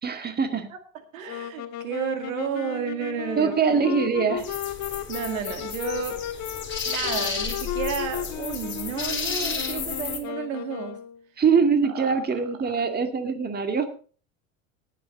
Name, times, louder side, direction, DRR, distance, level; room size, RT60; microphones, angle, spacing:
voice 1, 0.0-0.7 3.4-4.6 11.4-13.9, right 6 dB, 25° right, 7 dB, 2.1 m, -23 dB
voice 2, 1.1-3.9 5.1-6.2 6.9-11.0 11.8-12.2 12.6-12.7, right 7 dB, 80° right, 7 dB, 2.0 m, -32 dB
sound 1, 1.2-11.2, left 9 dB, 45° left, 1.6 m, -34 dB
sound 2, 4.4-10.2, left 6 dB, 30° left, 3.6 m, -32 dB
18.0 x 7.6 x 4.1 m, 0.39 s
hypercardioid pair, 85°, 40 cm